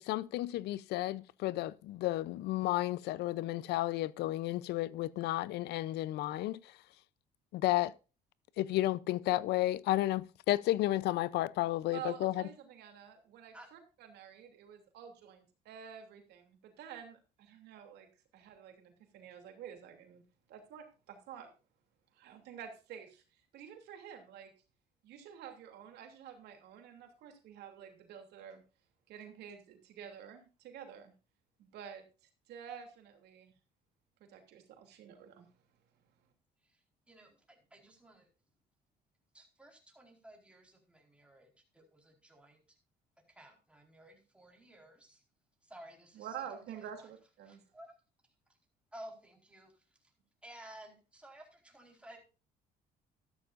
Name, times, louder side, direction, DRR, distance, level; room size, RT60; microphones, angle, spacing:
voice 1, 0.0-6.6 7.5-7.9 8.6-12.4, left 16 dB, 80° left, 0.7 m, -32 dB
voice 2, 11.9-13.8 14.1-18.1 18.3-20.2 20.5-21.5 22.1-23.2 23.5-24.5 25.0-28.6 29.1-31.1 31.6-32.0 32.5-33.5 34.2-35.5 46.1-47.6, right 8 dB, 80° right, 3.0 m, -49 dB
voice 3, 36.6-38.3 39.3-42.6 43.3-45.2 45.6-47.1 47.4-47.9 48.9-49.8 50.4-52.2, right 1 dB, 5° right, 4.5 m, -55 dB
13.5 x 13.0 x 2.6 m
cardioid pair, 110°, 17 cm